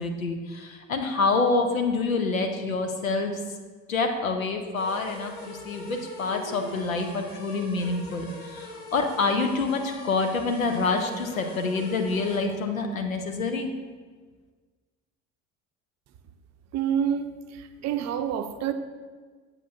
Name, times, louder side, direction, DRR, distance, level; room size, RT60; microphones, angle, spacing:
voice 1, 0.0-3.3 3.9-13.7, left 3 dB, 90° left, 5 dB, 0.7 m, -27 dB
sound 1, 4.7-12.4, left 2 dB, 60° left, 1.9 m, -42 dB
voice 2, 16.7-18.7, right 8 dB, 45° right, 9 dB, 0.6 m, -28 dB
8.2 x 7.1 x 2.7 m, 1.4 s
figure-of-eight pair, 60°, 40 cm